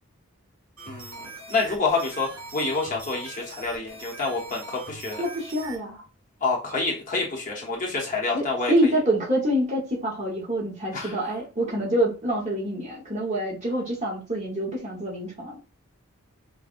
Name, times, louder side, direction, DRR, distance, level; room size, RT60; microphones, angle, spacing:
sound 1, 0.8-5.8, right 3 dB, 70° right, 1.6 m, -42 dB
voice 1, 0.9-5.2 6.4-8.9 10.9-11.2, left 3 dB, 35° left, 0.9 m, -28 dB
voice 2, 5.2-6.0 8.3-15.6, right 1 dB, 30° right, 1.1 m, -26 dB
5.0 x 2.2 x 2.5 m
head